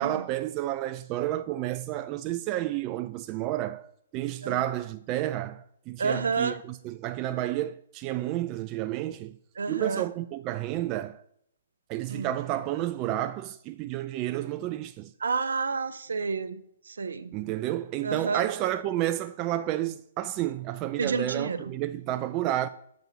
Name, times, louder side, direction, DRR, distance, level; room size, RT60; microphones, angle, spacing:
voice 1, 0.0-9.4 9.7-11.2 11.9-15.1 17.3-22.7, right 14 dB, 30° right, 0.3 m, -31 dB
voice 2, 6.0-6.6 9.6-10.1 12.1-12.3 15.2-16.6 16.9-17.3 18.0-18.4 21.0-21.7, right 5 dB, 75° right, 0.8 m, -29 dB
6.9 x 3.8 x 6.0 m
hypercardioid pair, 135°, 0 cm